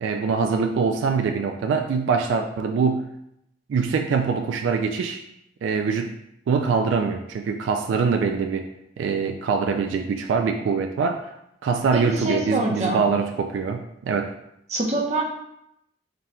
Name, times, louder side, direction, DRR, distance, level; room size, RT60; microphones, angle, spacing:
voice 1, 0.0-3.0 3.7-5.2 5.6-6.2 6.5-8.7 9.0-11.3 11.6-14.3, right 5 dB, 80° right, 5 dB, 0.3 m, -23 dB
voice 2, 11.9-13.1 14.7-15.2, right 2 dB, 35° right, -1 dB, 0.7 m, -25 dB
3.8 x 2.2 x 4.3 m, 0.79 s
head